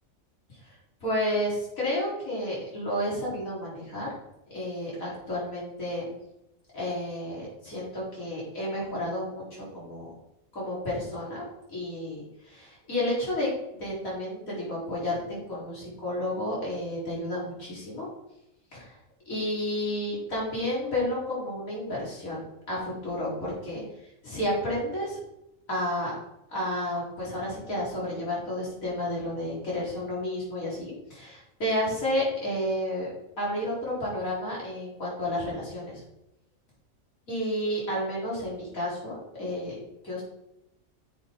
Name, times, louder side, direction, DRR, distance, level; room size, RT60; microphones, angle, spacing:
voice 1, 1.0-4.1 4.5-6.1 6.7-10.1 10.5-11.4 11.7-13.5 13.8-18.1 18.7-18.9 19.3-23.8 24.2-25.2 25.7-26.1 26.5-33.1 33.4-36.0 37.3-39.1 39.4-39.7 40.0-40.2, left 1 dB, 85° left, -6 dB, 4.7 m, -31 dB
9.6 x 7.5 x 3.8 m, 0.88 s
omnidirectional pair, 1.4 m